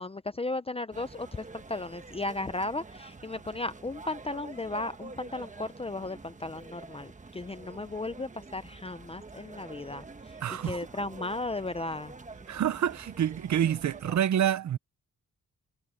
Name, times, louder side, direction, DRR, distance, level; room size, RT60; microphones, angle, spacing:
voice 1, 0.0-10.4 10.6-12.1, left 2 dB, 20° left, 0.6 m, -35 dB
sound 1, 0.9-14.2, right 3 dB, 25° right, 1.3 m, -47 dB
voice 2, 10.4-10.9 12.5-14.8, right 10 dB, 60° right, 0.7 m, -27 dB
wide cardioid pair, 125°, 32 cm